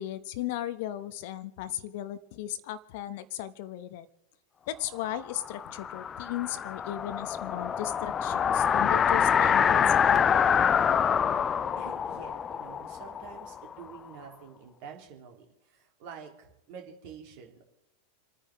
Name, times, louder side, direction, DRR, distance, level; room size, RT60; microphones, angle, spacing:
voice 1, 0.0-4.1 4.7-10.2, left 13 dB, 50° left, 13 dB, 1.0 m, -36 dB
sound 1, 5.3-14.0, left 7 dB, 25° left, 0.4 m, -26 dB
voice 2, 11.8-17.6, right 6 dB, 45° right, 1 dB, 3.3 m, -47 dB
29.0 x 9.9 x 3.6 m, 0.90 s
figure-of-eight pair, 90°, 0 cm